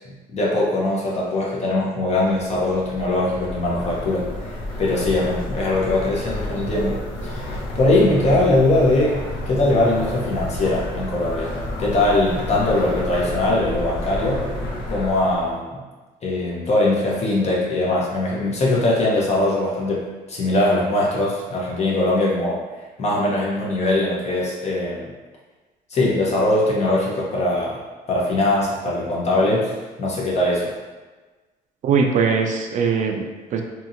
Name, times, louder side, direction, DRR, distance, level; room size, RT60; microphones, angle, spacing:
voice 1, 0.3-11.5 11.8-14.5 14.9-15.8 16.2-22.6 23.0-25.1 25.9-27.8 28.1-29.7 30.0-30.7, left 2 dB, 40° left, -4 dB, 0.6 m, -21 dB
sound 1, 2.1-15.6, left 1 dB, 80° left, 0.8 m, -31 dB
voice 2, 31.8-33.6, right 5 dB, 50° right, 3 dB, 0.4 m, -21 dB
2.8 x 2.7 x 2.4 m, 1.3 s
cardioid pair, 110°, 17 cm